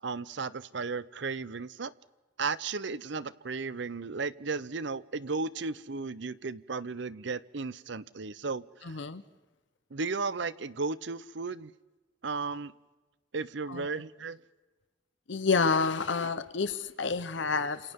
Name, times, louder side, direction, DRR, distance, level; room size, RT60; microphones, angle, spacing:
voice 1, 0.0-1.9 2.4-9.0 9.9-11.7 12.2-12.7 13.3-14.4, right 4 dB, 60° right, 17 dB, 0.7 m, -35 dB
voice 2, 8.9-9.2 13.7-13.8 15.3-17.8, left 4 dB, 70° left, 12 dB, 0.9 m, -28 dB
29.5 x 27.5 x 3.7 m, 1.2 s
head